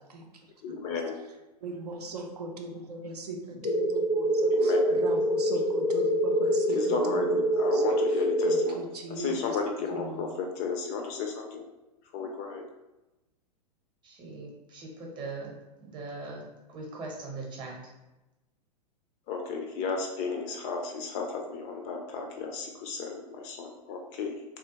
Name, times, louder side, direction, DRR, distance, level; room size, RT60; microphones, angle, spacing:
voice 1, 0.6-1.2 4.5-5.0 6.7-11.7 12.1-12.6 19.3-24.4, left 4 dB, 30° left, 3 dB, 0.4 m, -33 dB
voice 2, 1.6-3.4 3.6-7.0 7.7-7.8 8.5-9.3 9.9-10.3, right 2 dB, 70° right, 3 dB, 0.5 m, -39 dB
voice 3, 3.5-3.9 14.0-15.5 15.8-17.8, right 3 dB, 20° right, -1 dB, 0.8 m, -41 dB
sound 1, 3.6-8.6, equal, 80° left, 0.6 m, -25 dB
3.2 x 2.4 x 2.8 m, 1.0 s
figure-of-eight pair, 100°, 21 cm